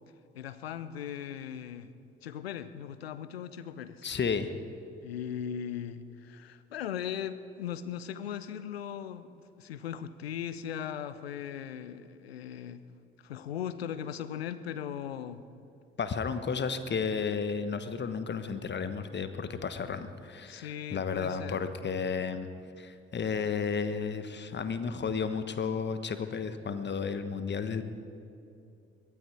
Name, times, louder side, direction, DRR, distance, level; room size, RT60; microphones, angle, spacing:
voice 1, 0.3-1.9 2.2-4.1 5.0-12.8 13.2-15.4 20.5-21.6, left 9 dB, 85° left, 14 dB, 0.6 m, -38 dB
voice 2, 4.0-4.5 16.0-22.5 22.8-27.8, left 5 dB, 35° left, 10 dB, 1.2 m, -33 dB
21.5 x 13.0 x 4.8 m, 2.6 s
figure-of-eight pair, 45°, 30 cm